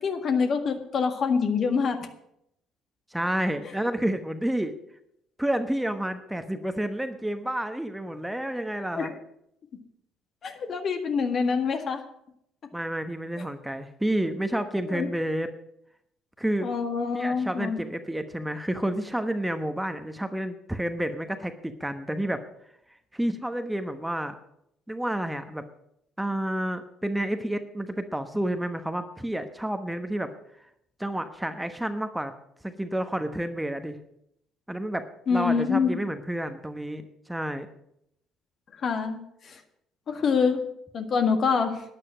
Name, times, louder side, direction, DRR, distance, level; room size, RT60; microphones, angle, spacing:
voice 1, 0.0-2.0 9.0-9.1 10.4-12.0 14.9-15.1 16.6-17.8 35.3-36.0 38.8-39.2 39.4-39.6 40.1-40.7 40.9-41.8, left 5 dB, 45° left, 6 dB, 1.8 m, -25 dB
voice 2, 3.1-4.7 5.4-9.1 12.7-15.5 16.4-16.7 17.1-22.4 23.1-24.4 24.9-25.6 26.2-30.3 31.0-32.3 32.6-34.0 34.7-37.7, right 1 dB, 5° right, 8 dB, 1.1 m, -30 dB
12.0 x 9.9 x 6.2 m, 0.76 s
hypercardioid pair, 50°, 0 cm